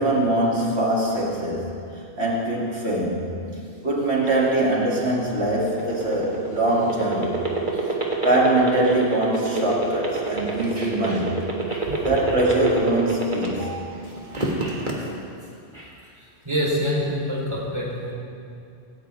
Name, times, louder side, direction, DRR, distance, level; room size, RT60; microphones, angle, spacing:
voice 1, 0.0-3.3 3.8-7.4 7.7-8.0 8.2-11.3 12.0-13.7, right 1 dB, 75° right, -4 dB, 2.9 m, -23 dB
sound 1, 5.6-13.8 14.2-14.9, right 2 dB, 45° right, 2.1 m, -25 dB
voice 2, 10.8-11.2 11.7-11.9 13.9-14.0 14.3-14.9 15.7-15.9 16.4-18.1, equal, 25° right, -5 dB, 3.7 m, -28 dB
17.5 x 17.5 x 3.5 m, 2.5 s
omnidirectional pair, 1.1 m